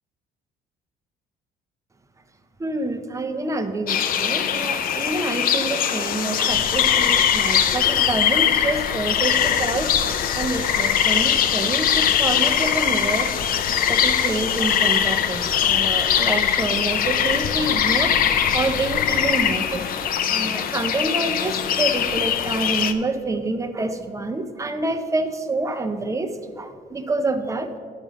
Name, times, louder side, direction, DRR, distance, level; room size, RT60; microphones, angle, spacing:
voice 1, 2.6-13.6 13.9-18.2 18.5-19.9 20.3-27.7, right 2 dB, 20° right, 8 dB, 0.7 m, -27 dB
sound 1, 3.9-22.9, left 9 dB, 60° left, 0.6 m, -21 dB
11.0 x 5.3 x 6.3 m, 2.1 s
cardioid pair, 110°, 17 cm